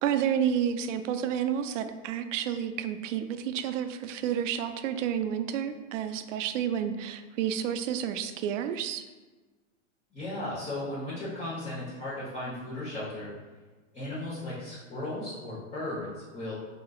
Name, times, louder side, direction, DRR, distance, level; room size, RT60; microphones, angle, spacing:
voice 1, 0.0-9.0, right 9 dB, 70° right, 9 dB, 0.5 m, -30 dB
voice 2, 10.1-13.3 13.9-16.5, left 1 dB, 20° left, -9 dB, 1.1 m, -36 dB
4.8 x 3.9 x 2.4 m, 1.3 s
supercardioid pair, 150°, 39 cm